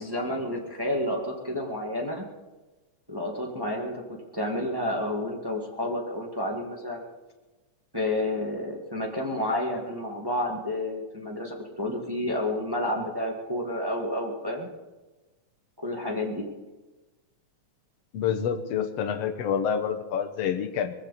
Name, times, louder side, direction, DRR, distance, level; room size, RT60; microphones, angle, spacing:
voice 1, 0.0-2.2 3.1-7.0 7.9-14.7 15.8-16.5, left 1 dB, 10° right, 0 dB, 1.2 m, -30 dB
voice 2, 18.1-20.9, left 8 dB, 65° left, 8 dB, 1.9 m, -27 dB
21.0 x 15.0 x 4.2 m, 1.2 s
omnidirectional pair, 3.4 m